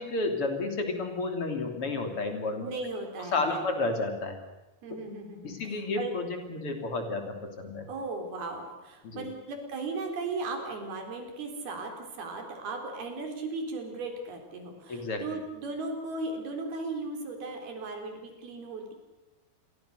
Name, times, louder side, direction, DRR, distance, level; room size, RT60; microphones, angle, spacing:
voice 1, 0.0-2.7 3.2-4.4 4.9-5.0 5.4-7.9 9.0-9.3 14.9-15.2, left 3 dB, 40° left, 5 dB, 3.5 m, -31 dB
voice 2, 2.6-3.7 4.8-6.1 7.9-18.9, right 3 dB, 85° right, 4 dB, 5.7 m, -37 dB
29.0 x 23.0 x 6.6 m, 1.0 s
omnidirectional pair, 4.3 m